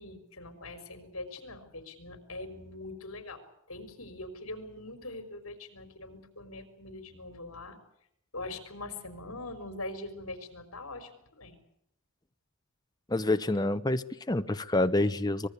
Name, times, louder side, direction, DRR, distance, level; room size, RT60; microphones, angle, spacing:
voice 1, 0.0-3.4 3.7-7.8 8.3-11.6, left 2 dB, 65° left, 9 dB, 4.8 m, -42 dB
voice 2, 13.1-15.5, left 2 dB, 15° left, 9 dB, 0.9 m, -27 dB
25.0 x 20.5 x 8.3 m, 0.72 s
head